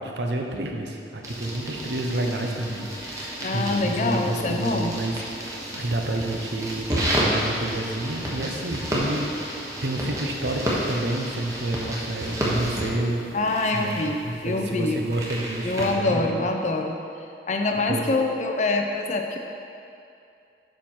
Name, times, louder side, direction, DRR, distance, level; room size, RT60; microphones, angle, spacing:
voice 1, 0.0-13.3 13.7-16.4 17.9-18.1, right 2 dB, 75° right, 2 dB, 0.8 m, -29 dB
sound 1, 1.2-15.9, equal, 20° right, 1.1 m, -31 dB
sound 2, 1.4-13.7, equal, 5° left, 0.6 m, -44 dB
voice 2, 3.4-4.9 13.3-15.0 15.6-17.0 17.5-19.4, left 2 dB, 40° left, 3 dB, 0.6 m, -25 dB
7.4 x 5.6 x 4.5 m, 2.5 s
head